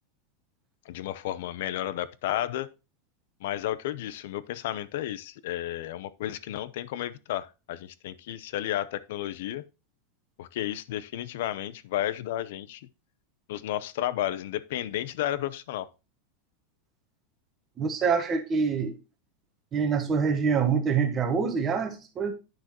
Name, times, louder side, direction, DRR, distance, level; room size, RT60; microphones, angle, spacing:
voice 1, 0.9-2.7 3.4-9.6 10.4-12.9 13.5-15.9, left 13 dB, 60° left, 0.6 m, -32 dB
voice 2, 17.8-18.9 19.7-22.3, right 6 dB, 15° right, 1.2 m, -25 dB
10.5 x 6.1 x 3.0 m
supercardioid pair, 180°, 0 cm